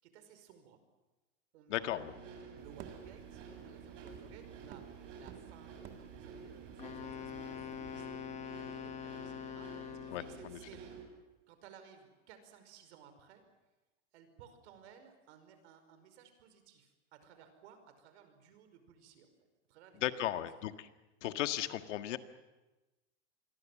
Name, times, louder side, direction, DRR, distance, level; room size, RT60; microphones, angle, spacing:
voice 1, 0.0-0.8 1.5-1.9 2.5-8.1 8.4-11.0 11.5-13.4 14.1-19.3 19.7-20.3 20.6-20.7, right 8 dB, 65° right, 9 dB, 5.3 m, -58 dB
voice 2, 1.7-2.1 10.1-10.6 20.0-20.7 21.2-22.2, left 13 dB, 80° left, 9 dB, 1.8 m, -35 dB
sound 1, 1.8-11.0, right 5 dB, 85° right, 8.0 m, -51 dB
sound 2, 2.6-8.2, right 10 dB, 30° right, 1.8 m, -54 dB
Wind instrument woodwind instrument, 6.8-10.5, left 9 dB, 20° left, 1.1 m, -44 dB
27.5 x 22.0 x 7.5 m, 1.1 s
supercardioid pair, 160°, 36 cm